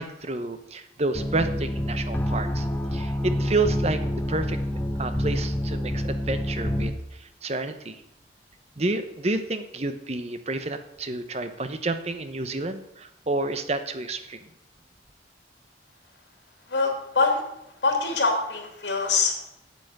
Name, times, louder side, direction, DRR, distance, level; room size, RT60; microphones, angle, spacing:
voice 1, 0.0-2.7 2.9-4.6 5.0-8.0 8.8-14.4, right 2 dB, 35° right, 9 dB, 0.9 m, -29 dB
sound 1, 1.1-6.9, equal, 10° left, 1.0 m, -27 dB
voice 2, 16.7-17.4 17.8-19.5, left 4 dB, 85° left, 2 dB, 3.2 m, -24 dB
8.9 x 8.2 x 8.1 m, 0.81 s
head